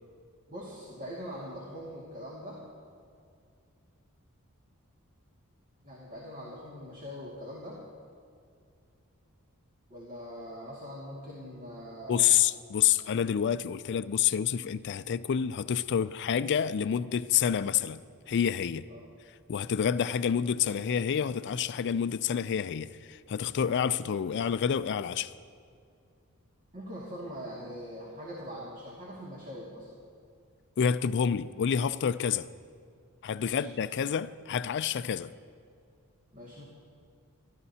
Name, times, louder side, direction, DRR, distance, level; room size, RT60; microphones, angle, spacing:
voice 1, 0.5-2.6 5.8-7.8 9.9-12.3 18.9-19.0 26.7-29.9 33.4-33.7 36.3-36.6, equal, 35° right, 2.1 m, -42 dB
voice 2, 12.1-18.0 18.3-18.8 19.5-25.3 30.8-32.5 33.2-35.3, left 8 dB, 50° left, 0.4 m, -28 dB
25.0 x 12.5 x 2.8 m
head